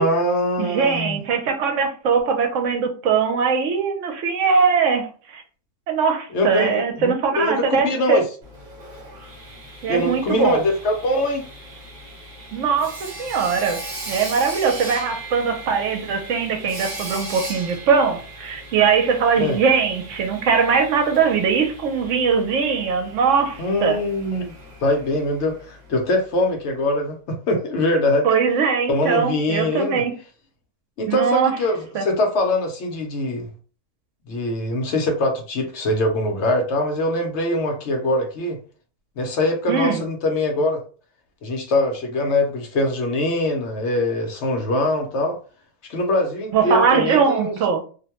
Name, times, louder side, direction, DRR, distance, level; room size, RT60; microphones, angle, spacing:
voice 1, 0.0-1.2 6.3-8.2 9.9-11.4 19.4-19.6 23.6-24.5 24.8-28.3 28.9-30.0 31.0-33.5 34.3-38.6 39.2-40.8 41.4-45.4 45.9-47.6, left 1 dB, 65° left, 0.9 m, -23 dB
voice 2, 0.6-5.4 5.9-8.2 9.8-10.6 12.5-13.8 14.1-24.0 28.2-30.1 31.1-31.5 31.9-32.0 39.7-40.0 46.5-47.8, right 5 dB, 75° right, 1.0 m, -21 dB
Sawing, 8.4-26.2, right 2 dB, 40° right, 1.0 m, -38 dB
2.5 x 2.2 x 2.8 m
omnidirectional pair, 1.3 m